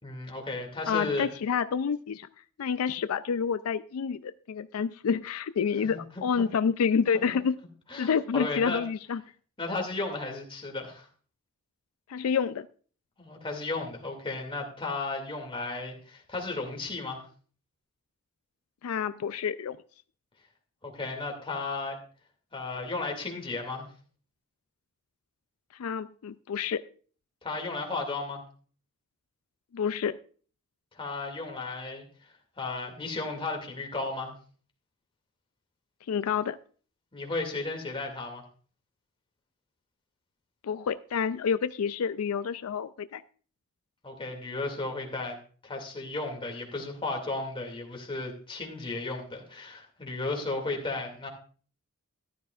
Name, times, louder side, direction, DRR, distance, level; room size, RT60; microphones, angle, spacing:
voice 1, 0.0-1.3 5.8-6.0 6.3-6.4 7.9-8.8 9.6-11.1 13.2-17.2 20.8-22.0 22.5-23.9 27.4-28.4 30.9-34.3 37.1-38.4 44.0-45.4 45.6-51.3, left 3 dB, 25° left, 1 dB, 2.3 m, -34 dB
voice 2, 0.9-2.3 2.6-7.6 8.0-9.2 12.1-12.7 18.8-19.8 25.7-26.8 29.7-30.2 36.1-36.6 40.6-43.2, left 6 dB, 85° left, 14 dB, 0.4 m, -28 dB
14.0 x 11.5 x 2.4 m, 0.42 s
head